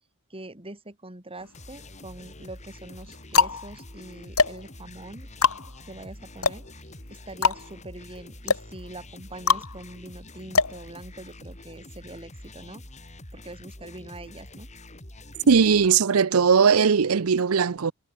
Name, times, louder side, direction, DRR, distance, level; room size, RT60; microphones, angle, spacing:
voice 1, 0.3-5.3 5.6-6.6 7.1-12.8 13.3-14.7, right 2 dB, 25° right, 3.4 m, -43 dB
sound 1, 1.4-2.1 2.8-11.5, left 5 dB, 75° left, 2.7 m, -26 dB
sound 2, 1.5-15.9, left 1 dB, 35° left, 7.2 m, -45 dB
voice 2, 15.5-17.9, right 6 dB, 75° right, 0.6 m, -19 dB
head